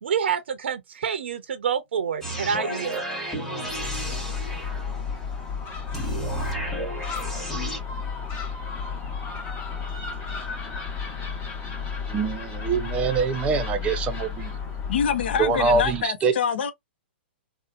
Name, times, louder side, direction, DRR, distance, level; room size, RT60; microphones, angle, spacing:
voice 1, 0.0-3.0, right 7 dB, 80° right, 0.6 m, -27 dB
sound 1, 2.2-5.2 5.9-7.8, right 1 dB, 5° left, 1.0 m, -32 dB
Gull seagull, 3.7-16.1, left 5 dB, 30° left, 1.0 m, -33 dB
voice 2, 12.1-14.5 15.4-16.3, right 5 dB, 20° right, 0.5 m, -24 dB
voice 3, 14.9-16.7, left 7 dB, 65° left, 0.6 m, -25 dB
2.7 x 2.1 x 2.4 m
hypercardioid pair, 145°, 6 cm